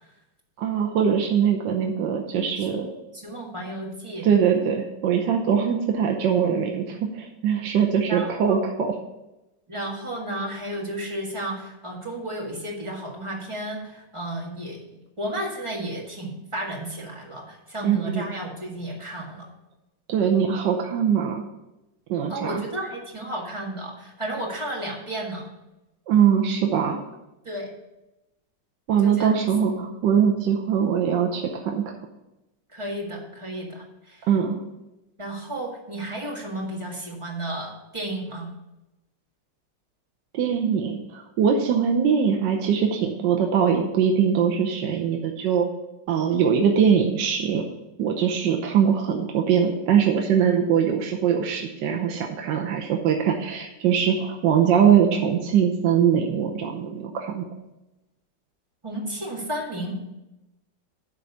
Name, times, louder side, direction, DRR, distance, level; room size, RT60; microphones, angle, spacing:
voice 1, 0.6-2.9 4.2-8.9 17.8-18.2 20.1-21.4 22.1-22.6 26.1-27.0 28.9-31.9 34.3-34.6 40.3-45.7 46.1-47.6 48.0-57.5, right 7 dB, 75° right, 2 dB, 1.5 m, -22 dB
voice 2, 3.1-4.3 8.1-8.6 9.7-19.5 22.3-25.5 27.4-27.7 29.0-29.3 29.7-29.8 32.7-34.3 35.2-38.5 58.8-60.0, right 1 dB, 15° right, -2 dB, 1.8 m, -33 dB
11.5 x 3.8 x 6.9 m, 0.96 s
omnidirectional pair, 2.0 m